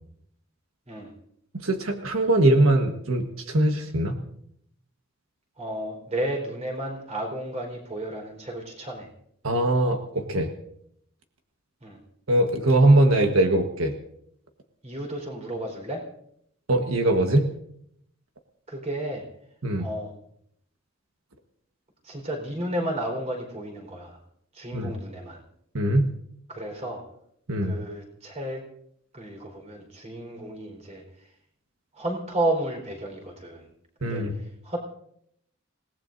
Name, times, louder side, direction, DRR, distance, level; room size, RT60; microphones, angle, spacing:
voice 1, 1.6-4.2 9.4-10.5 12.3-14.0 16.7-17.5 19.6-19.9 24.7-24.9 25.7-26.1 27.5-27.7 34.0-34.3, right 1 dB, 90° right, 4 dB, 1.4 m, -21 dB
voice 2, 5.6-9.1 11.8-12.0 14.8-16.0 18.7-19.2 19.8-20.1 22.0-24.2 24.5-25.4 26.5-27.0 27.6-28.6 29.1-31.3 31.9-33.7 34.0-34.8, right 1 dB, 35° right, 1 dB, 4.5 m, -32 dB
28.0 x 18.5 x 2.7 m, 0.71 s
head